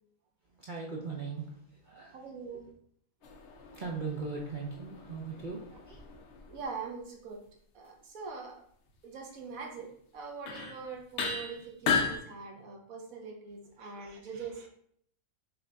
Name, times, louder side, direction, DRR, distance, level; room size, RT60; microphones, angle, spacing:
voice 1, 0.5-2.6 3.5-6.2 14.2-14.3, right 4 dB, 50° right, -2 dB, 0.5 m, -40 dB
voice 2, 2.1-2.6 6.5-7.4 7.7-8.6 9.0-14.7, right 5 dB, 70° right, 2 dB, 1.2 m, -43 dB
sound 1, 3.2-6.7 9.8-9.9 10.5-10.8 11.2-12.2, left 5 dB, 60° left, 0.8 m, -35 dB
5.8 x 2.5 x 3.4 m, 0.66 s
omnidirectional pair, 1.6 m